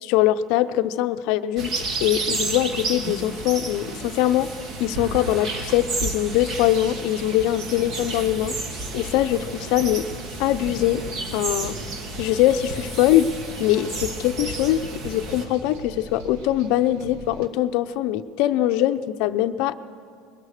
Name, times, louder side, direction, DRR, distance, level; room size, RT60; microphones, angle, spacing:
voice 1, 0.0-4.5 4.8-8.6 8.9-10.1 10.4-11.7 12.2-13.3 13.6-19.8, left 13 dB, 55° left, 10 dB, 0.6 m, -22 dB
sound 1, 1.6-15.4, right 2 dB, 30° right, 1.6 m, -31 dB
sound 2, 4.7-17.5, right 3 dB, 90° right, 1.8 m, -42 dB
21.5 x 19.0 x 6.6 m, 2.2 s
cardioid pair, 175°, 0 cm